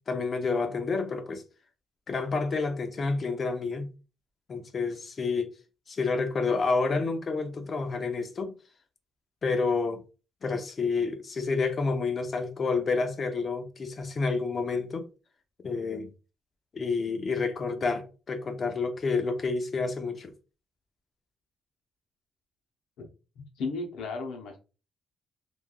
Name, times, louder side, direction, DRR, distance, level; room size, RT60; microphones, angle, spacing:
voice 1, 0.1-1.4 2.1-3.9 4.5-5.5 5.9-8.5 9.4-10.0 10.4-15.1 15.6-16.1 16.7-20.3, left 4 dB, 30° left, 0.4 m, -29 dB
voice 2, 23.4-24.6, left 3 dB, 75° left, 0.7 m, -35 dB
3.2 x 2.2 x 2.3 m
cardioid pair, 165°, 0 cm